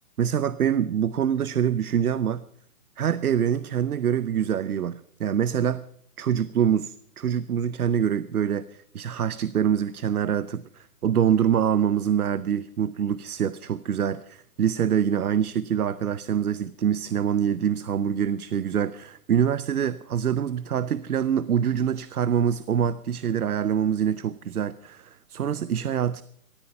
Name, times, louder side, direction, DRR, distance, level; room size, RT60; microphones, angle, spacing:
voice 1, 0.2-2.4 3.0-5.8 6.2-8.7 8.9-26.2, right 8 dB, 70° right, 18 dB, 0.8 m, -25 dB
19.0 x 13.5 x 5.5 m, 0.69 s
hypercardioid pair, 155°, 46 cm